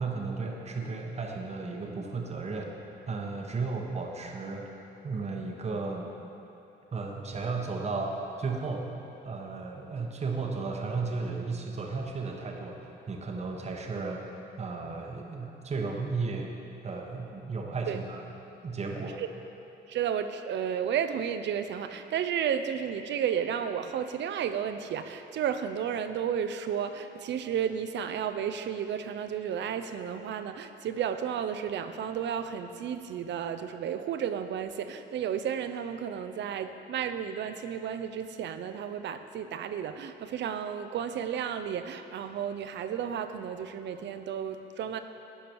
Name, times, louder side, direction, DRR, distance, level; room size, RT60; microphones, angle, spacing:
voice 1, 0.0-2.8 3.1-4.7 5.0-6.1 6.9-8.9 9.2-12.8 13.1-14.2 14.6-16.5 16.8-18.2 18.6-19.2, right 4 dB, 35° right, 1 dB, 0.9 m, -34 dB
voice 2, 19.9-45.0, right 8 dB, 65° right, 9 dB, 0.5 m, -32 dB
10.0 x 5.2 x 4.6 m, 2.9 s
cardioid pair, 90°, 20 cm